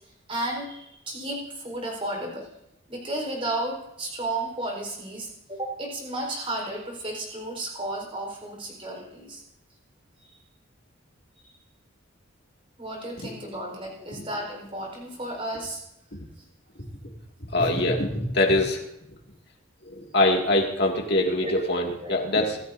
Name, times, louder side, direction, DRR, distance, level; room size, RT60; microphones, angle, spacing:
voice 1, 0.3-2.5 2.9-9.4 10.2-10.3 12.8-15.8 17.6-17.7 21.4-21.7 22.0-22.1, right 1 dB, 25° right, 0 dB, 4.3 m, -33 dB
voice 2, 17.5-18.8 19.8-22.6, left 1 dB, 50° left, 1 dB, 2.2 m, -23 dB
25.5 x 13.5 x 2.7 m, 0.83 s
head